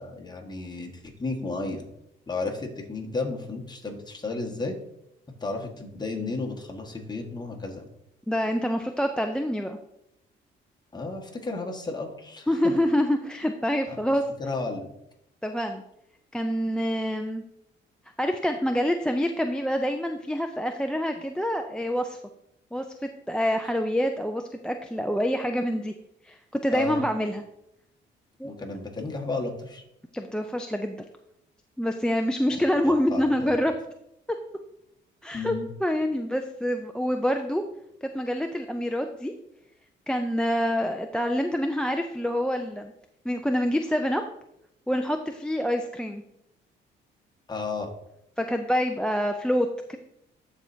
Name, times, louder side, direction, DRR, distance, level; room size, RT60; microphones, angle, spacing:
voice 1, 0.0-1.9 2.3-4.8 5.4-7.9 10.9-12.6 13.9-14.0 14.4-14.9 26.7-27.0 28.4-29.8 32.8-33.6 35.3-35.7 47.5-47.9, left 3 dB, 20° left, 0 dB, 1.5 m, -33 dB
voice 2, 8.3-9.8 12.5-14.2 15.4-15.8 16.3-17.4 18.2-22.2 22.7-25.9 26.2-27.4 28.4-28.5 30.1-31.0 31.8-33.7 35.2-35.5 35.8-37.6 38.0-39.3 40.1-42.9 43.2-44.2 44.9-46.2 48.4-50.0, equal, 5° left, 6 dB, 0.4 m, -26 dB
12.5 x 4.4 x 2.7 m, 0.80 s
cardioid pair, 90°, 20 cm